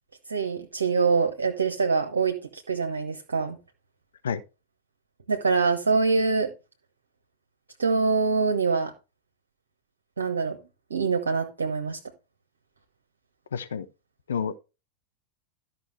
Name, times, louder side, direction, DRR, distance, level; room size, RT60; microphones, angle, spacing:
voice 1, 0.3-3.6 5.3-6.5 7.8-8.9 10.2-10.6 10.9-12.0, right 4 dB, 70° right, 1.1 m, -24 dB
voice 2, 13.5-13.9 14.3-14.6, left 6 dB, 65° left, 0.8 m, -29 dB
13.0 x 5.8 x 3.4 m
figure-of-eight pair, 90°, 0 cm